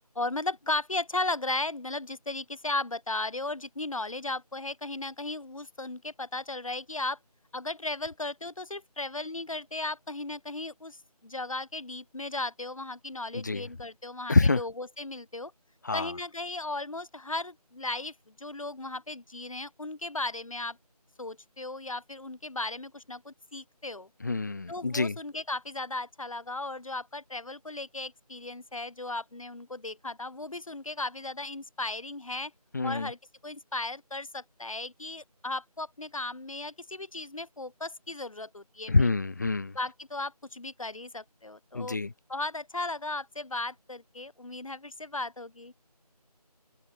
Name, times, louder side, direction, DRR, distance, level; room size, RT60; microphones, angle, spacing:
voice 1, 0.1-7.2 7.5-15.5 15.9-20.8 21.2-24.1 24.7-32.5 32.8-33.2 33.4-39.1 39.7-42.0 42.3-45.7, left 2 dB, 55° left, 2.8 m, -36 dB
voice 2, 14.3-14.6 15.8-16.1 24.2-25.2 32.7-33.1 38.9-39.7 41.7-42.1, left 3 dB, 25° left, 2.0 m, -26 dB
figure-of-eight pair, 170°, 20 cm